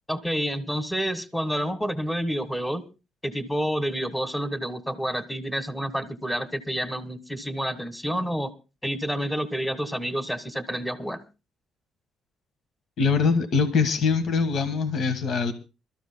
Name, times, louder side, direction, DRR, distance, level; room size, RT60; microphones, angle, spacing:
voice 1, 0.1-2.8 3.2-8.5 8.8-11.2, equal, 5° left, 1.5 m, -29 dB
voice 2, 13.0-15.5, left 5 dB, 60° left, 1.5 m, -23 dB
27.0 x 13.5 x 2.2 m
cardioid pair, 115°, 0 cm